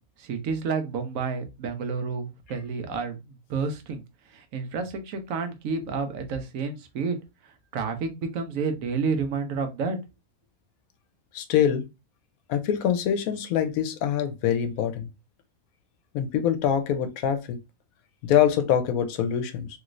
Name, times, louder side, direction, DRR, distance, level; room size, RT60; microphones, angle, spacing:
voice 1, 0.2-4.0 4.3-7.2 7.7-10.0, right 5 dB, 75° right, 1.1 m, -30 dB
voice 2, 11.3-11.8 12.5-15.1 16.1-17.6 18.2-19.7, left 9 dB, 80° left, 1.0 m, -24 dB
3.0 x 3.0 x 2.5 m
omnidirectional pair, 1.4 m